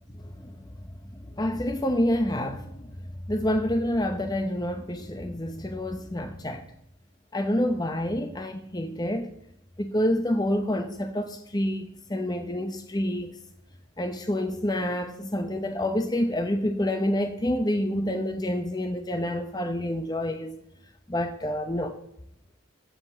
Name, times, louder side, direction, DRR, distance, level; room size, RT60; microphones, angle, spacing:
voice 1, 0.2-0.6 1.3-3.0 3.3-6.6 7.3-9.3 9.8-13.3 14.0-20.5 21.1-22.0, left 1 dB, 20° left, 0.9 m, -28 dB
15.5 x 5.4 x 7.6 m
head